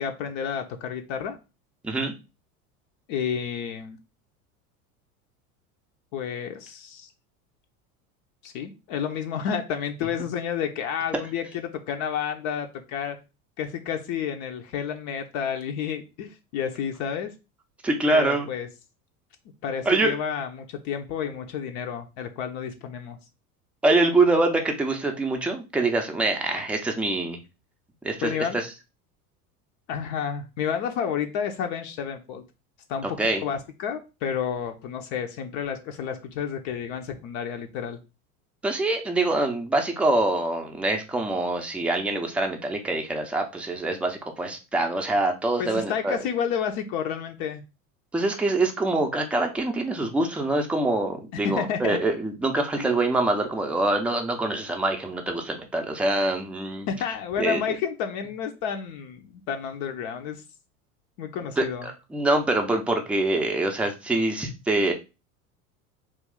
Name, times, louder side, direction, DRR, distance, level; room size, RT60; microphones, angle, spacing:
voice 1, 0.0-1.4 3.1-4.0 6.1-7.1 8.4-13.2 13.6-17.3 18.1-18.7 19.6-23.2 28.2-28.6 29.9-32.4 32.9-38.0 45.6-47.6 51.4-52.0 52.7-53.0 56.9-60.4 61.2-61.9, left 7 dB, 55° left, 5 dB, 0.6 m, -30 dB
voice 2, 17.8-18.5 19.9-20.2 23.8-27.4 28.0-28.7 33.0-33.4 38.6-46.2 48.1-56.9 57.4-57.6 61.6-64.9, right 2 dB, 5° right, 3 dB, 0.5 m, -25 dB
3.1 x 2.3 x 3.6 m, 0.28 s
hypercardioid pair, 90°, 45 cm